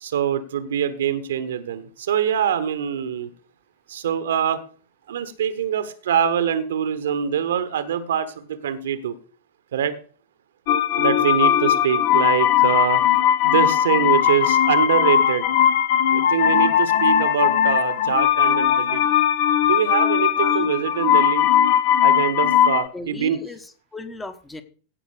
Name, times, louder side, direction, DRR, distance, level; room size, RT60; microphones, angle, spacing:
voice 1, 0.0-3.3 3.9-4.6 5.1-9.1 9.7-9.9 11.0-13.0 13.4-15.4 16.1-19.0 19.6-21.5 22.0-23.4, right 9 dB, 60° right, 13 dB, 1.1 m, -24 dB
sound 1, 10.7-22.9, left 10 dB, 50° left, 1.1 m, -19 dB
voice 2, 20.4-20.7 22.9-24.6, left 2 dB, 10° left, 10 dB, 1.3 m, -37 dB
16.0 x 5.8 x 5.0 m, 0.40 s
figure-of-eight pair, 90°, 0 cm